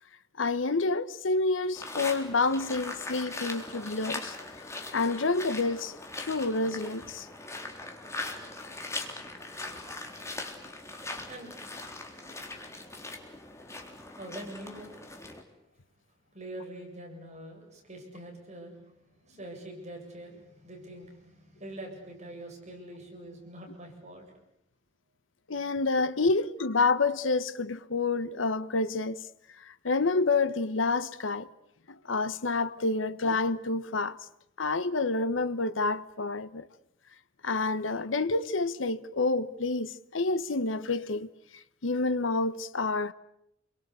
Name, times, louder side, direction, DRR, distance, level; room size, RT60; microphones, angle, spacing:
voice 1, 0.4-4.3 4.9-7.3 25.5-29.2 29.6-31.5 32.1-34.2 34.6-36.6 37.4-41.3 41.8-43.1, left 3 dB, 85° left, 1.1 m, -28 dB
sound 1, 1.7-15.4, left 2 dB, 15° left, 3.8 m, -40 dB
voice 2, 10.7-13.1 13.5-13.6 14.0-15.0 16.3-24.4, right 1 dB, 35° right, 7.7 m, -45 dB
28.5 x 23.5 x 8.4 m
head